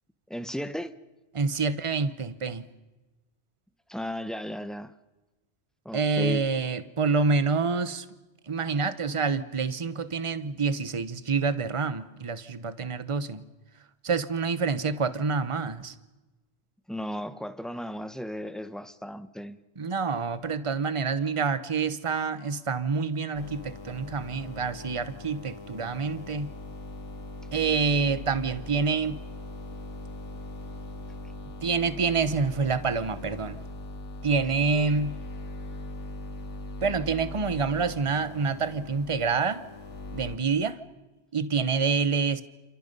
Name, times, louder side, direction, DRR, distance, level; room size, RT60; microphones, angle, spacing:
voice 1, 0.3-0.9 3.9-4.9 5.8-6.4 16.9-19.6, equal, ahead, 11 dB, 0.9 m, -35 dB
voice 2, 1.3-2.7 5.9-8.0 8.5-13.4 14.0-15.9 19.8-26.5 27.5-29.2 31.6-33.6 34.2-35.2 36.8-39.6 40.1-40.8 41.3-42.4, right 4 dB, 30° right, 13 dB, 1.0 m, -27 dB
sound 1, 23.3-40.4, left 2 dB, 85° left, 2.3 m, -40 dB
29.0 x 28.5 x 5.5 m, 1.1 s
omnidirectional pair, 1.2 m